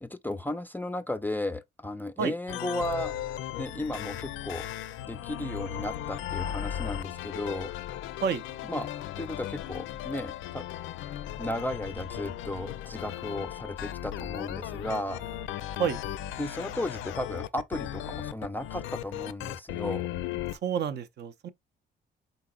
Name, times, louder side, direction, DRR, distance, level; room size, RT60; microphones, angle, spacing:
voice 1, 0.0-3.1 3.6-4.7 5.1-7.7 8.7-8.9 9.2-10.6 11.4-15.2 16.4-20.1, left 1 dB, 10° left, 0.4 m, -34 dB
sound 1, 2.5-20.6, left 12 dB, 85° left, 0.4 m, -36 dB
voice 2, 20.6-21.5, right 7 dB, 60° right, 0.5 m, -29 dB
4.0 x 3.9 x 2.3 m
cardioid pair, 90°, 20 cm